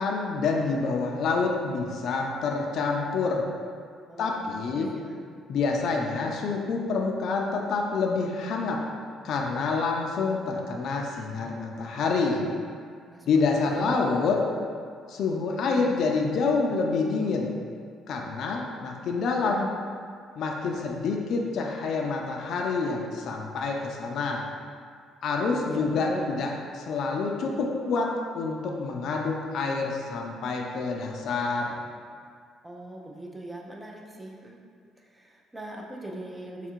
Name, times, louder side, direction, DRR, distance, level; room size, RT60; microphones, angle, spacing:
voice 1, 0.0-3.4 4.2-4.9 5.5-8.8 9.2-12.4 13.3-14.4 15.1-17.5 18.1-19.7 20.4-24.4 25.2-26.5 26.8-28.1 28.3-31.7, left 4 dB, 60° left, 0 dB, 0.4 m, -27 dB
voice 2, 4.1-5.2 13.1-14.0 15.5-15.9 20.6-21.0 25.7-26.3 32.6-34.6 35.0-36.7, right 1 dB, 15° right, 0 dB, 0.5 m, -41 dB
3.5 x 2.4 x 4.4 m, 2.1 s
cardioid pair, 125°, 0 cm